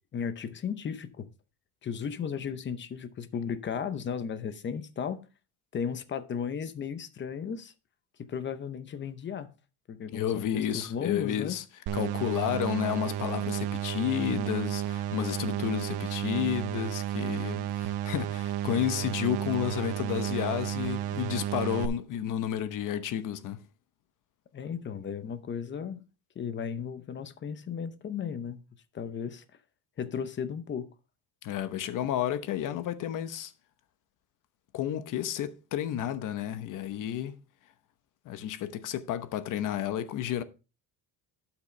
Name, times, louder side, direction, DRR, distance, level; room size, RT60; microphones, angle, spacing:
voice 1, 0.1-1.3 1.8-5.2 5.7-7.7 8.3-9.5 9.9-11.6 24.5-26.0 26.4-28.6 28.9-29.4 30.0-30.9, left 7 dB, 30° left, 0.8 m, -35 dB
voice 2, 10.1-11.6 11.9-23.6 31.4-33.5 34.7-37.4 38.2-40.4, left 11 dB, 50° left, 1.0 m, -31 dB
sound 1, 11.9-21.9, right 11 dB, 70° right, 0.8 m, -32 dB
12.0 x 6.0 x 3.3 m
cardioid pair, 160°, 39 cm